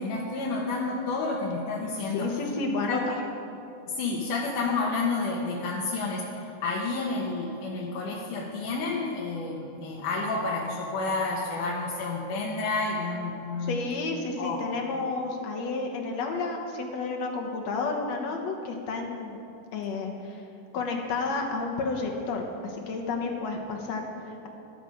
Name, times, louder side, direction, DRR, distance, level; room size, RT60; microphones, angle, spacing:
voice 1, 0.0-2.3 2.9-3.0 3.9-6.3 6.6-13.8 14.4-14.6, left 3 dB, 80° left, -4 dB, 2.7 m, -30 dB
voice 2, 2.1-3.0 13.6-19.4 19.7-20.4 20.7-24.5, left 3 dB, 65° left, 2 dB, 2.1 m, -31 dB
13.0 x 12.0 x 5.0 m, 2.8 s
omnidirectional pair, 3.6 m